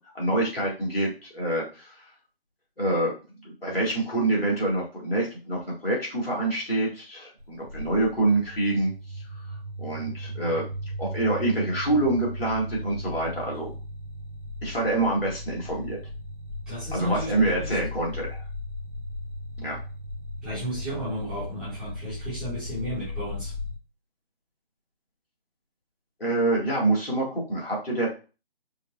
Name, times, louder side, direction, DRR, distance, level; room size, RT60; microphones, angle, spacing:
voice 1, 0.1-2.0 2.8-3.1 3.4-8.9 9.3-9.4 9.8-10.6 11.0-13.7 14.6-16.0 16.9-18.4 19.6-19.8 26.2-28.1, right 2 dB, 70° left, -4 dB, 2.2 m, -26 dB
sound 1, 7.4-23.8, left 1 dB, 55° right, 0.6 m, -36 dB
voice 2, 16.7-17.8 19.6-19.7 20.4-23.5, equal, 5° right, -15 dB, 1.1 m, -34 dB
5.1 x 2.5 x 2.4 m, 0.33 s
figure-of-eight pair, 150°, 31 cm